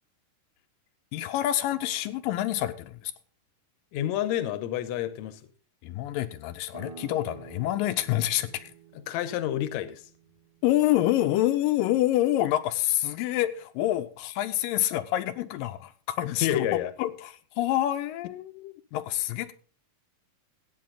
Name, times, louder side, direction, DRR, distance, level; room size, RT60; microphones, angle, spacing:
voice 1, 1.1-3.1 5.8-8.7 10.6-19.5, left 14 dB, 85° left, 7 dB, 2.4 m, -27 dB
voice 2, 3.9-5.4 9.1-10.0 16.4-16.9, left 12 dB, 70° left, 12 dB, 1.9 m, -29 dB
sound 1, 6.7-12.1, right 7 dB, 45° right, 2.4 m, -50 dB
15.5 x 8.4 x 3.9 m, 0.41 s
omnidirectional pair, 3.9 m